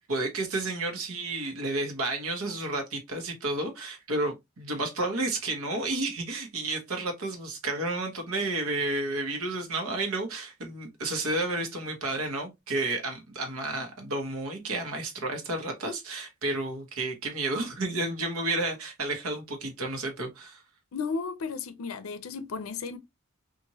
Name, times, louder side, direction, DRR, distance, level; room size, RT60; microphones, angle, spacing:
voice 1, 0.1-20.6, right 2 dB, 80° right, 1.0 m, -31 dB
voice 2, 20.9-23.0, left 5 dB, 70° left, 0.5 m, -34 dB
2.9 x 2.5 x 2.7 m
head